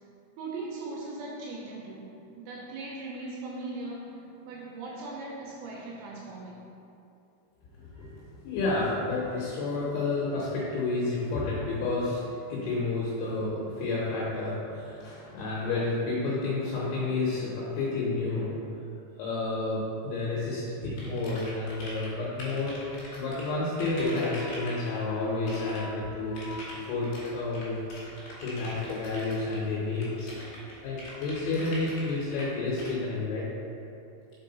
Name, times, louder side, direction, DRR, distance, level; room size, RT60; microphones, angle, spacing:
voice 1, 0.4-6.6 7.9-8.1, right 2 dB, 85° right, -4 dB, 2.8 m, -39 dB
voice 2, 7.8-18.7 19.2-22.8 23.2-27.8 28.4-30.3 30.8-33.5, left 3 dB, 80° left, -6 dB, 3.1 m, -30 dB
sound 1, 21.0-22.1 22.4-25.0 25.5-25.8 26.4-32.4 32.8-32.9, left 1 dB, 65° left, 2.5 m, -43 dB
6.0 x 4.7 x 3.9 m, 2.8 s
omnidirectional pair, 5.5 m